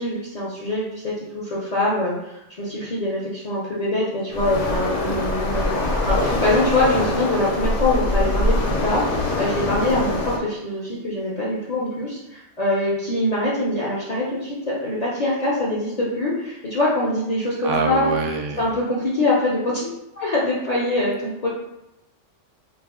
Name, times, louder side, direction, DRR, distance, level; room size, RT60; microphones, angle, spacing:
voice 1, 0.0-5.8 6.0-18.1 18.6-19.9 20.2-21.5, left 1 dB, 55° left, -7 dB, 0.4 m, -24 dB
Waves surf, 4.3-10.4, left 1 dB, 80° left, 0.9 m, -23 dB
voice 2, 17.6-18.7, right 4 dB, 80° right, 2 dB, 0.9 m, -25 dB
2.4 x 2.0 x 3.5 m, 0.91 s
omnidirectional pair, 1.3 m